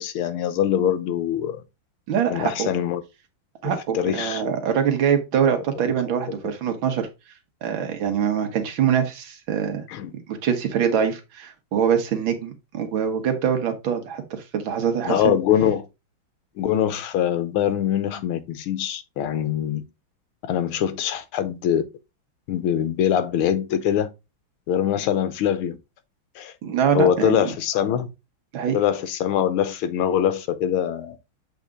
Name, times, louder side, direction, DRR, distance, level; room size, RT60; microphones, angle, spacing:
voice 1, 0.0-1.6 2.3-3.0 3.6-4.6 6.4-6.5 9.9-10.1 15.0-15.9 16.6-19.8 20.5-21.9 22.5-24.1 24.7-25.8 26.3-26.5 26.9-28.1 28.7-31.2, left 10 dB, 90° left, 1.7 m, -23 dB
voice 2, 2.1-2.7 3.6-7.1 7.6-9.8 10.3-15.4 26.6-27.5 28.5-28.8, right 8 dB, 70° right, 2.0 m, -24 dB
7.5 x 3.9 x 3.6 m
omnidirectional pair, 2.3 m